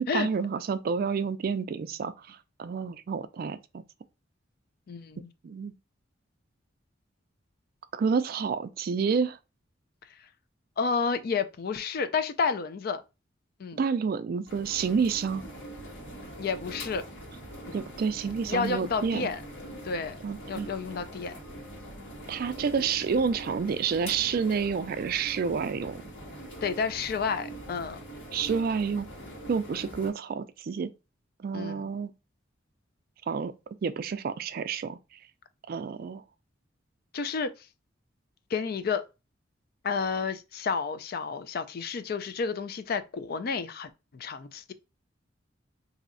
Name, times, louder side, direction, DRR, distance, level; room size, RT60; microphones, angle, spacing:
voice 1, 0.1-3.8 5.4-5.7 7.9-9.4 13.8-15.4 17.7-19.3 20.2-20.7 22.3-26.0 28.3-29.1 29.5-30.9 31.4-32.1 33.3-33.5 33.8-35.0 35.7-36.2, right 5 dB, 50° right, 0.3 m, -29 dB
voice 2, 4.9-5.3 10.8-13.0 13.6-13.8 16.4-17.0 17.7-17.8 18.5-19.4 19.8-20.2 20.5-21.3 26.6-28.0 31.5-31.8 37.1-37.7 38.5-39.0 39.8-44.7, left 5 dB, 50° left, 0.4 m, -30 dB
sound 1, 14.5-30.1, right 1 dB, 80° left, 1.5 m, -43 dB
4.1 x 2.7 x 2.5 m
head